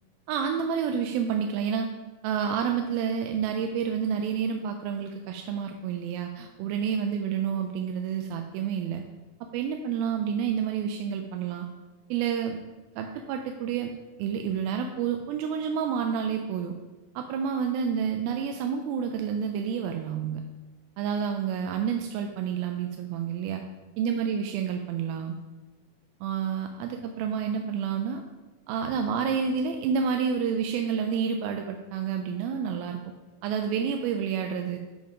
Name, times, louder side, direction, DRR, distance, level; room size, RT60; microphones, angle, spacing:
voice 1, 0.3-1.9 2.2-9.0 9.4-11.7 12.1-12.6 13.0-13.9 14.2-16.8 17.2-20.4 21.0-23.6 24.0-25.4 26.2-28.2 28.7-33.0 33.4-34.8, right 7 dB, 90° right, 4 dB, 2.4 m, -29 dB
7.1 x 5.1 x 5.0 m, 1.2 s
omnidirectional pair, 4.1 m